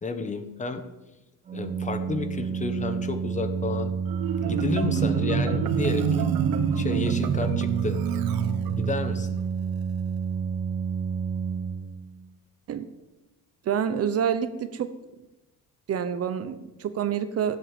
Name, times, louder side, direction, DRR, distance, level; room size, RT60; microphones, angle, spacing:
voice 1, 0.0-0.8 1.5-3.9 4.4-6.3 6.7-8.0 8.8-9.4, left 3 dB, 20° left, 8 dB, 1.2 m, -31 dB
Organ, 1.5-12.3, right 6 dB, 20° right, 0.6 m, -30 dB
Marimba xylophone, 4.1-9.2, right 7 dB, 85° right, 1.4 m, -27 dB
voice 2, 13.6-14.9 15.9-17.6, right 8 dB, 45° right, 11 dB, 0.9 m, -27 dB
16.0 x 8.1 x 9.0 m, 1.0 s
cardioid pair, 175°, 34 cm